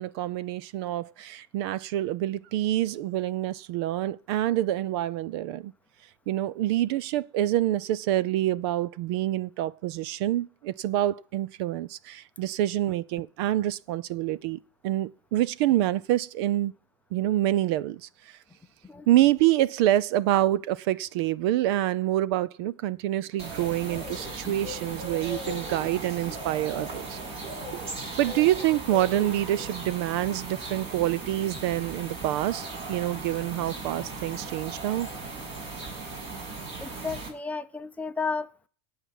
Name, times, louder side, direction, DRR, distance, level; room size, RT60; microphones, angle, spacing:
voice 1, 0.0-5.7 6.3-16.7 17.1-18.4 19.1-27.2 27.7-27.8 28.2-35.1, right 14 dB, 60° right, 0.6 m, -27 dB
sound 1, 23.4-37.3, right 2 dB, 45° right, 7.2 m, -37 dB
voice 2, 36.8-38.7, left 4 dB, 10° left, 0.7 m, -33 dB
18.0 x 5.9 x 7.1 m
supercardioid pair, 145°, 15 cm